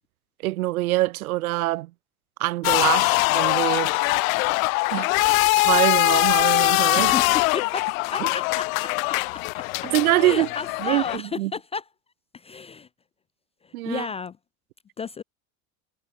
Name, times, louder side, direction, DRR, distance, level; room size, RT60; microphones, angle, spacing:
voice 1, 0.4-1.9 2.4-4.0 4.9-7.1 8.2-8.3 9.8-10.5 10.8-11.5 13.7-14.1, right 18 dB, 75° right, 0.7 m, -24 dB
sound 1, 2.6-11.2, left 25 dB, 65° left, 0.7 m, -22 dB
voice 2, 6.9-9.9 10.2-11.8 12.3-12.9 13.6-14.4 15.0-15.2, left 5 dB, 15° left, 0.3 m, -33 dB
hypercardioid pair, 70°, 43 cm